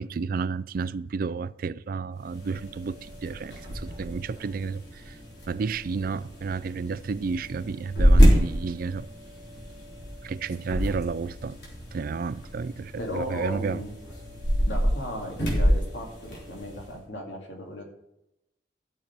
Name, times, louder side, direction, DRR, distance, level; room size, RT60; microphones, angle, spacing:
voice 1, 0.0-5.2 5.5-9.1 10.2-11.6 11.9-13.8, right 5 dB, 50° right, 0.4 m, -31 dB
sound 1, 2.2-17.0, equal, 65° left, 3.5 m, -27 dB
voice 2, 13.0-13.9 14.7-17.8, left 1 dB, 85° left, 2.4 m, -36 dB
13.0 x 6.7 x 4.5 m
head